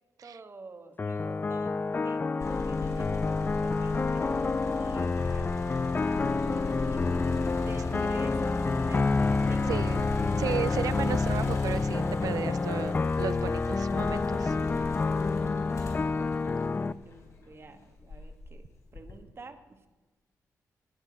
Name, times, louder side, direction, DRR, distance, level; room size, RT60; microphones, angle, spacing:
voice 1, 0.2-5.5 6.4-7.2 7.5-8.6 8.8-9.1 9.4-9.8 14.4-14.9 16.7-18.7 18.9-19.9, right 3 dB, 40° right, 8 dB, 1.3 m, -49 dB
sound 1, 1.0-16.9, left 3 dB, 30° left, 0.4 m, -28 dB
sound 2, 1.8-17.9, left 2 dB, 70° left, 2.5 m, -59 dB
sound 3, 2.4-17.4 18.0-19.2, left 4 dB, 55° left, 3.9 m, -37 dB
voice 2, 9.7-10.1 10.4-14.6, right 9 dB, 75° right, 20 dB, 0.4 m, -35 dB
18.0 x 6.9 x 6.0 m, 1.2 s
cardioid pair, 90°, 6 cm